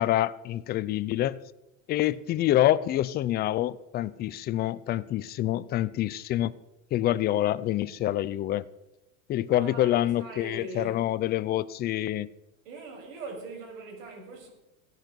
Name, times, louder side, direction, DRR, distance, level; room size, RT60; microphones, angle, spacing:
voice 1, 0.0-1.4 1.9-6.5 6.9-8.6 9.3-12.3, left 13 dB, 25° left, 0.5 m, -26 dB
voice 2, 9.4-11.0 12.6-14.5, right 2 dB, 70° right, 7.0 m, -41 dB
16.5 x 10.5 x 6.9 m
supercardioid pair, 145°, 41 cm